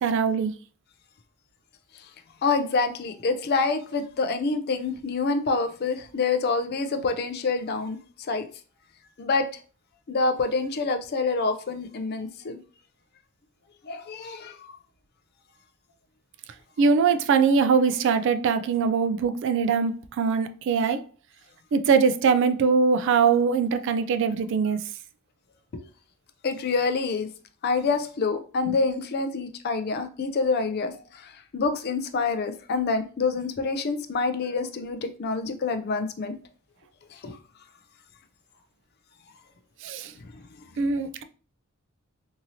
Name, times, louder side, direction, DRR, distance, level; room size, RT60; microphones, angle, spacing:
voice 1, 0.0-0.5 16.8-21.0 21.7-24.8 28.7-28.8 39.8-40.1 40.8-41.2, right 5 dB, 60° right, 0.3 m, -22 dB
voice 2, 2.4-8.0 8.3-8.5 9.2-9.5 10.1-12.6 13.8-14.8 25.7-25.8 26.4-27.3 27.6-36.4 37.2-37.4, left 4 dB, 50° left, 0.4 m, -27 dB
2.9 x 2.7 x 2.7 m
head